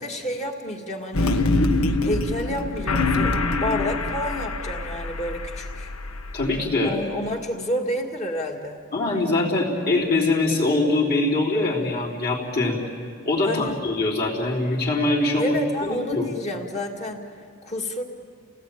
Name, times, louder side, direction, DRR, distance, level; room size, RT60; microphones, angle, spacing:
voice 1, 0.0-1.3 2.0-5.9 6.8-8.8 13.4-13.8 15.4-17.3 17.6-18.0, equal, 35° left, 2 dB, 2.2 m, -30 dB
sound 1, 1.1-6.7, left 2 dB, 85° left, 1.2 m, -25 dB
voice 2, 6.3-7.0 8.9-12.8 13.3-16.3, left 2 dB, 50° left, -3 dB, 3.9 m, -23 dB
29.5 x 18.5 x 9.1 m, 2.3 s
head